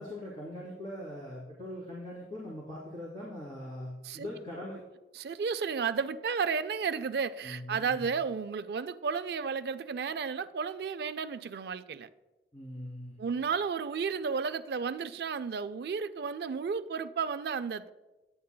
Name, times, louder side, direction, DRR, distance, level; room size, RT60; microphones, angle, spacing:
voice 1, 0.0-4.8 7.4-8.0 12.5-13.2, left 1 dB, 30° left, 2.6 m, -41 dB
voice 2, 5.1-12.1 13.2-17.9, right 5 dB, 65° right, 0.3 m, -33 dB
10.5 x 9.3 x 2.2 m
head